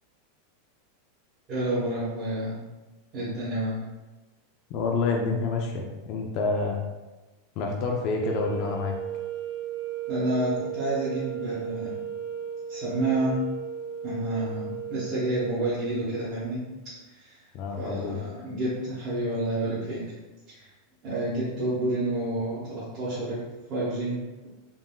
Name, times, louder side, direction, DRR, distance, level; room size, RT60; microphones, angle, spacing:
voice 1, 1.5-2.6 3.1-3.8 10.1-11.9 12.7-13.4 14.0-16.6 17.1-17.4 17.8-20.0 20.6-20.7 21.0-23.4 23.7-24.2, right 1 dB, 25° right, -11 dB, 0.8 m, -29 dB
voice 2, 4.7-6.8 7.6-9.0 17.5-18.2, left 4 dB, 35° left, 1 dB, 0.3 m, -28 dB
sound 1, 8.1-16.3, right 9 dB, 5° left, 0.8 m, -35 dB
3.5 x 2.5 x 2.3 m, 1.1 s
supercardioid pair, 175°, 0 cm